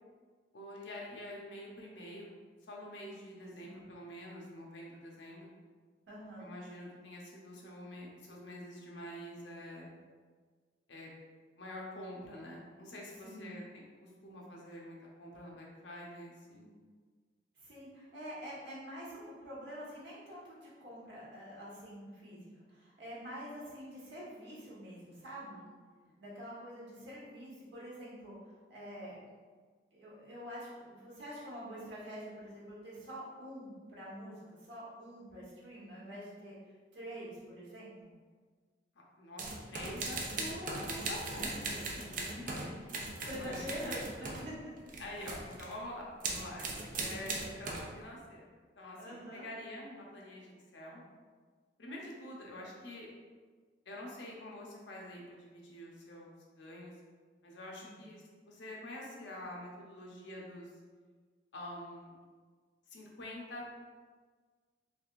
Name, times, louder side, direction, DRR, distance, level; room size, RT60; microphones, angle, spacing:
voice 1, 0.5-2.3 2.7-5.5 6.4-9.9 10.9-11.1 11.6-13.6 14.0-16.7 26.0-26.2 39.2-42.6 43.3-44.0 45.0-48.5 48.8-51.0 51.8-53.1 53.9-56.9 57.4-60.7 61.5-62.1 62.9-63.8, left 1 dB, 80° left, -2 dB, 0.8 m, -46 dB
voice 2, 6.1-6.5 13.2-13.5 17.5-25.6 26.2-28.4 28.7-29.2 29.9-36.6 36.9-38.1 42.5-42.7 43.1-44.5 49.0-49.5 57.8-58.1, equal, 75° right, -7 dB, 1.2 m, -46 dB
sound 1, 39.4-44.5 44.8-45.7 46.2-47.9, right 3 dB, 45° right, 0.4 m, -39 dB
3.5 x 3.3 x 2.4 m, 1.5 s
head